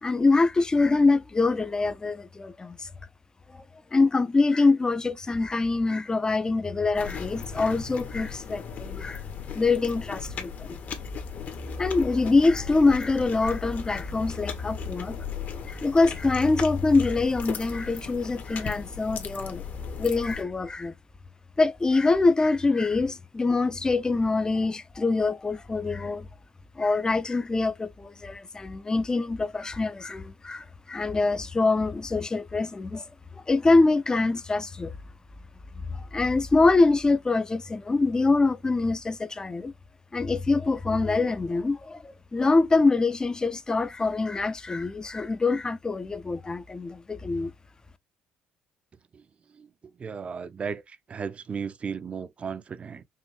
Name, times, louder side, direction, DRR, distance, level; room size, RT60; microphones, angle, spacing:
voice 1, 0.0-2.9 3.9-9.2 9.5-10.8 11.8-15.2 15.7-19.6 20.0-20.9 21.6-26.3 26.8-33.1 33.5-34.9 35.9-39.7 40.1-47.5, left 3 dB, 25° left, 0.6 m, -24 dB
sound 1, 6.9-20.4, left 5 dB, 60° left, 1.6 m, -37 dB
voice 2, 50.0-53.0, right 6 dB, 40° right, 0.6 m, -35 dB
5.6 x 2.6 x 3.2 m
supercardioid pair, 75°, 3 cm